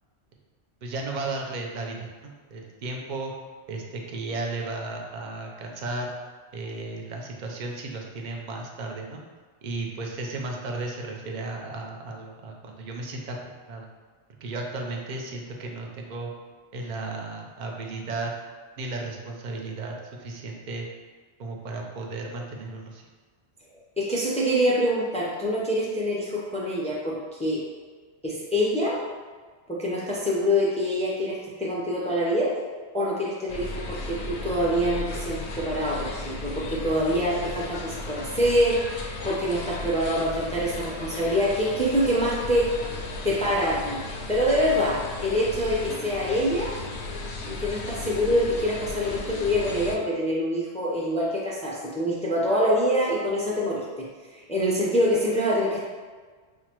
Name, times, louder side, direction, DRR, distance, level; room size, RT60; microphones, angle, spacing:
voice 1, 0.8-3.3 3.7-6.1 6.5-9.2 9.6-13.4 13.7-13.9 14.4-16.3 16.7-18.3 18.8-20.9 21.4-23.1, right 2 dB, 55° right, 0 dB, 0.6 m, -34 dB
voice 2, 24.0-27.6 28.2-29.0 29.7-32.5 32.9-42.7 43.2-44.0 44.3-46.8 47.4-54.1 54.3-55.8, equal, 10° left, -5 dB, 0.3 m, -25 dB
sound 1, 33.5-50.0, left 2 dB, 80° left, 0.8 m, -35 dB
6.0 x 2.1 x 2.9 m, 1.5 s
omnidirectional pair, 1.1 m